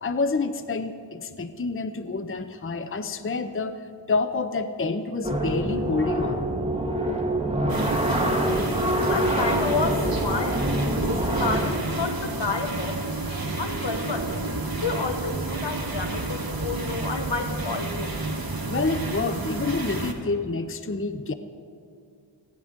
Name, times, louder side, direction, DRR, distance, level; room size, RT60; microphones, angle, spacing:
voice 1, 0.0-3.8 4.1-6.4 18.7-21.3, left 3 dB, 30° left, 10 dB, 0.6 m, -28 dB
sound 1, 5.2-11.7, right 1 dB, 15° right, 1.8 m, -25 dB
sound 2, 7.7-20.1, right 2 dB, 50° right, 1.4 m, -31 dB
voice 2, 9.0-13.0 13.6-14.3 14.8-18.1, left 4 dB, 70° left, 6 dB, 1.2 m, -30 dB
29.0 x 10.5 x 3.7 m, 2.3 s
wide cardioid pair, 45°, 44 cm